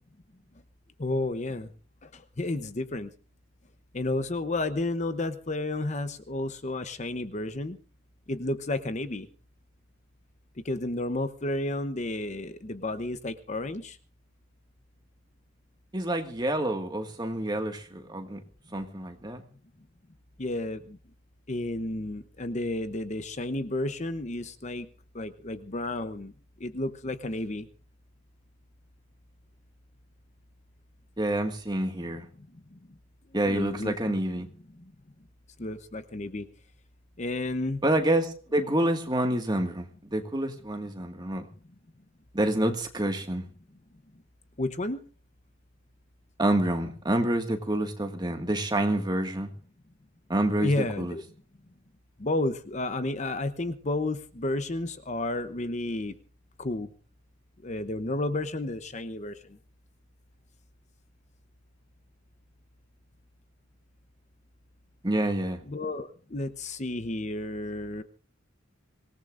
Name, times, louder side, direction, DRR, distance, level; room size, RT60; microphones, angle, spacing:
voice 1, 1.0-1.7 2.0-3.1 3.9-7.8 8.3-9.3 10.6-14.0 20.4-21.0 21.5-24.9 25.1-26.3 26.6-27.7 32.4-32.8 33.4-34.1 34.7-34.9 35.6-36.5 37.2-37.8 44.6-45.0 50.6-51.2 52.2-56.1 56.6-56.9 57.6-59.6 65.7-68.0, left 2 dB, 35° left, 11 dB, 0.8 m, -32 dB
voice 2, 15.9-18.4 18.7-19.4 31.2-32.3 33.3-34.5 37.8-41.5 42.3-43.4 46.4-49.5 50.3-51.2 65.0-65.6, right 1 dB, 20° right, 5 dB, 1.8 m, -28 dB
25.0 x 18.0 x 2.6 m, 0.40 s
head